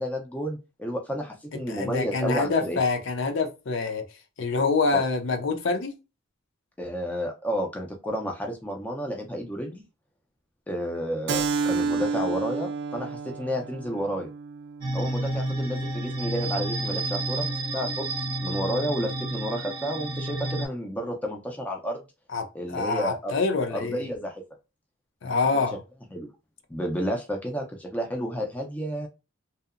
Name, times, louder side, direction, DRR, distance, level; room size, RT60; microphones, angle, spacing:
voice 1, 0.0-2.8 4.9-5.0 6.8-9.8 10.7-14.3 14.9-18.1 18.4-22.0 22.5-23.4 23.7-24.4 25.5-25.6 26.1-26.3 26.7-29.1, equal, 5° left, 0.4 m, -31 dB
voice 2, 1.7-4.0 4.4-6.0 22.3-24.0 25.2-25.8, left 4 dB, 60° left, 0.5 m, -26 dB
Keyboard (musical), 11.3-16.4, right 4 dB, 60° right, 0.4 m, -31 dB
sound 1, 14.8-20.7, right 2 dB, 25° right, 0.7 m, -30 dB
2.7 x 2.0 x 2.4 m
head